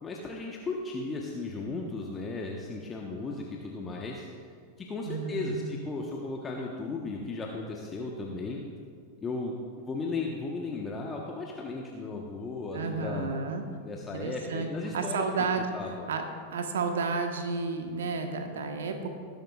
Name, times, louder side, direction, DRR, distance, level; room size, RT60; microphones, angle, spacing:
voice 1, 0.0-4.3 4.8-8.6 9.2-13.3 13.8-15.2 15.7-16.1, left 3 dB, 20° left, -1 dB, 1.2 m, -35 dB
voice 2, 5.1-5.6 12.7-13.6 14.1-14.7 14.9-16.2 16.5-19.1, right 4 dB, 60° right, 5 dB, 1.3 m, -31 dB
20.5 x 10.5 x 2.5 m, 2.1 s
figure-of-eight pair, 90°, 0 cm